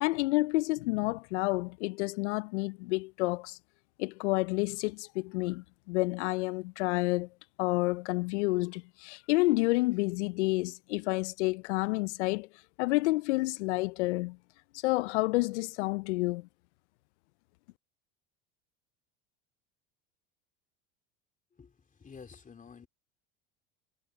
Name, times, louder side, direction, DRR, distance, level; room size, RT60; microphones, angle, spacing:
voice 1, 0.0-3.6 4.0-7.3 7.6-12.5 12.8-14.4 14.8-16.5, left 22 dB, 85° left, 0.5 m, -29 dB
voice 2, 21.5-22.9, left 5 dB, 25° left, 3.0 m, -51 dB
supercardioid pair, 95°, 34 cm